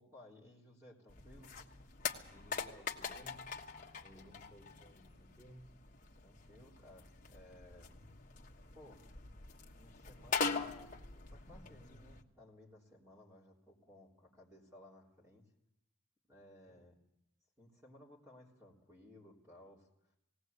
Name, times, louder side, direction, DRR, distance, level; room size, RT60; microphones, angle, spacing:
voice 1, 0.0-1.5 4.1-4.4 6.1-7.9 8.7-9.0 9.8-11.0 11.3-15.4 16.3-17.0 17.6-20.2, left 1 dB, 15° right, -3 dB, 3.7 m, -59 dB
sound 1, 1.1-12.2, left 5 dB, 40° left, 1.3 m, -43 dB
voice 2, 2.3-3.5 4.0-5.8 16.7-16.8, equal, 10° left, -3 dB, 2.9 m, -59 dB
18.5 x 18.0 x 8.2 m, 0.82 s
head